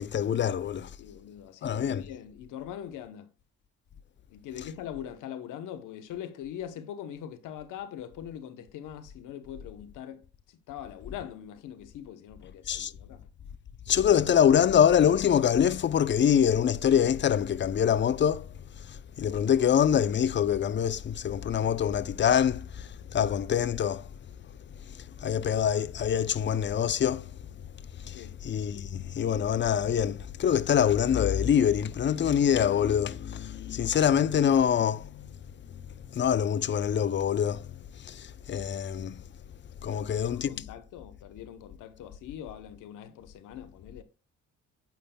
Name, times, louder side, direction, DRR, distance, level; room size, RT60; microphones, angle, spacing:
voice 1, 0.0-0.9 1.6-2.0 12.7-12.9 13.9-18.5 18.8-24.1 24.9-27.3 28.0-35.4 35.7-35.8 36.1-39.2 39.8-40.5, left 8 dB, 40° left, 0.5 m, -25 dB
voice 2, 1.0-3.3 4.3-13.2 28.1-28.4 39.9-44.0, left 10 dB, 90° left, 0.9 m, -42 dB
9.2 x 8.5 x 2.2 m
cardioid pair, 90°, 30 cm